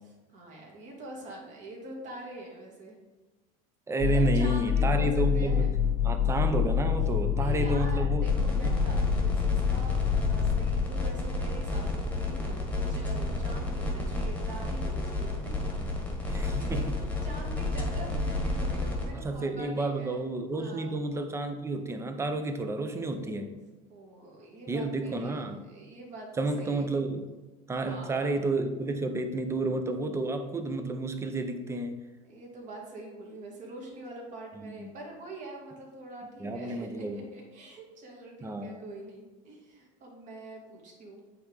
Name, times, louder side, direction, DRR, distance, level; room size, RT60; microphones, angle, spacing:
voice 1, 0.3-3.0 4.1-5.8 7.3-15.8 16.2-16.9 17.2-20.3 20.6-21.0 23.9-26.9 27.7-28.2 32.2-41.2, right 1 dB, 45° right, -1 dB, 2.0 m, -44 dB
voice 2, 3.9-5.7 6.0-8.8 16.3-17.0 19.1-23.5 24.7-25.6 26.4-27.3 27.7-32.0 34.5-34.9 36.4-37.2 38.4-38.7, right 2 dB, 15° right, 7 dB, 0.6 m, -31 dB
sound 1, 4.0-10.9, left 8 dB, 40° left, 0.6 m, -27 dB
sound 2, 8.2-19.1, left 2 dB, 10° left, 1.4 m, -31 dB
8.4 x 3.5 x 3.9 m, 1.2 s
supercardioid pair, 120°, 18 cm